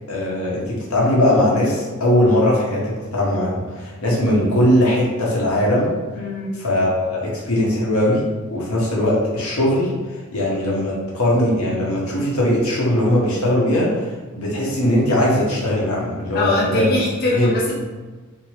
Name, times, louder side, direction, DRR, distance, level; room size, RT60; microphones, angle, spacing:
voice 1, 0.1-5.9 6.6-8.2 8.5-9.9 10.3-16.9 17.3-17.5, left 1 dB, 85° left, -4 dB, 1.0 m, -19 dB
voice 2, 6.1-6.6 16.3-17.7, left 1 dB, 45° left, -5 dB, 0.5 m, -22 dB
2.9 x 2.7 x 2.9 m, 1.3 s
head